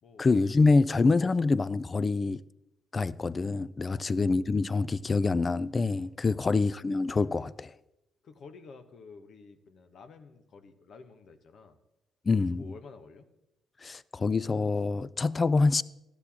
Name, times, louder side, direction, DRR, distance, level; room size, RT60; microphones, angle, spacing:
voice 1, 0.2-2.4 2.9-7.7 12.3-12.6 13.8-15.8, left 3 dB, 30° left, 0.3 m, -26 dB
voice 2, 8.2-11.8 12.3-13.3, left 4 dB, 60° left, 0.9 m, -50 dB
13.0 x 12.0 x 2.8 m
cardioid pair, 90°, 0 cm